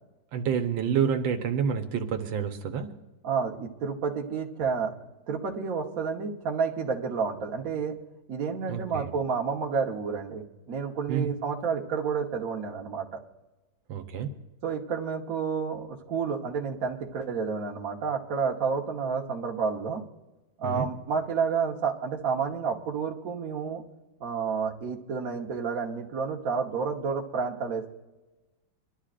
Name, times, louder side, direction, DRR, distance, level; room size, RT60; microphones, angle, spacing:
voice 1, 0.3-2.9 8.7-9.1 11.1-11.3 13.9-14.3 20.6-20.9, right 7 dB, 85° right, 6 dB, 1.7 m, -28 dB
voice 2, 3.2-4.9 5.3-8.0 8.3-13.2 14.6-20.0 20.6-23.8 24.2-27.9, right 5 dB, 50° right, 0 dB, 1.5 m, -30 dB
25.0 x 11.5 x 2.5 m, 1.1 s
omnidirectional pair, 2.1 m